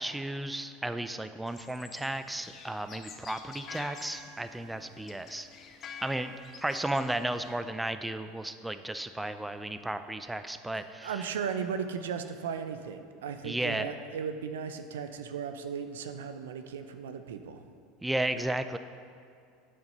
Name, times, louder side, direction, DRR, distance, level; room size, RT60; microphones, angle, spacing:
voice 1, 0.0-5.5 6.0-6.3 6.6-11.1 13.4-13.9 18.0-18.8, right 1 dB, 10° right, 10 dB, 0.4 m, -34 dB
sound 1, 1.5-7.6, left 5 dB, 40° left, 0.8 m, -48 dB
voice 2, 10.7-17.6, right 6 dB, 75° right, 9 dB, 0.5 m, -36 dB
8.7 x 6.6 x 5.3 m, 2.4 s
hypercardioid pair, 80°, 0 cm